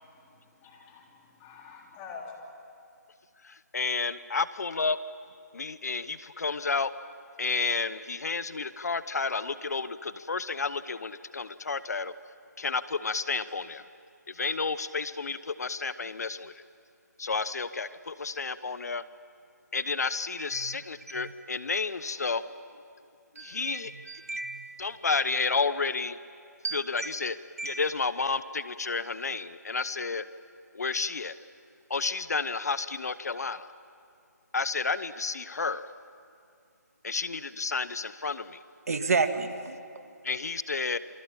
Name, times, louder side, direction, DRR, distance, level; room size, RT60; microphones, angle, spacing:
voice 1, 0.0-2.3, left 5 dB, 15° left, 0 dB, 3.3 m, -47 dB
voice 2, 3.4-5.0 5.5-6.9 7.4-12.1 12.6-13.8 14.3-16.6 17.2-19.0 19.7-22.4 23.4-23.9 24.8-26.2 26.7-27.4 27.6-30.2 30.7-31.3 31.9-33.7 34.5-35.9 37.0-38.6 40.2-41.0, left 4 dB, 65° left, 15 dB, 0.9 m, -31 dB
voice 3, 20.4-20.8 21.1-21.3 23.4-24.8 26.6-27.1 27.6-27.8 38.9-40.0, right 4 dB, 55° right, 8 dB, 1.9 m, -32 dB
27.5 x 23.0 x 8.7 m, 2.4 s
figure-of-eight pair, 165°, 10 cm